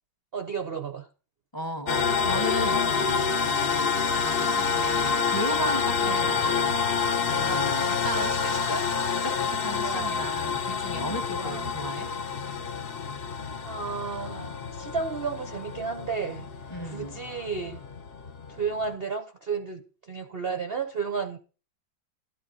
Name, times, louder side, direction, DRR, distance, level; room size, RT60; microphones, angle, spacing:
voice 1, 0.3-1.1 6.0-6.2 7.5-7.8 9.8-10.2 11.4-11.7 13.6-16.5 16.8-17.8 18.5-21.4, right 5 dB, 55° right, 7 dB, 0.6 m, -33 dB
voice 2, 1.5-8.9 9.2-12.1 16.7-17.2, equal, 15° left, 8 dB, 0.9 m, -35 dB
sound 1, 1.9-19.0, left 5 dB, 50° left, 0.6 m, -28 dB
13.0 x 11.0 x 2.8 m, 0.35 s
omnidirectional pair, 2.1 m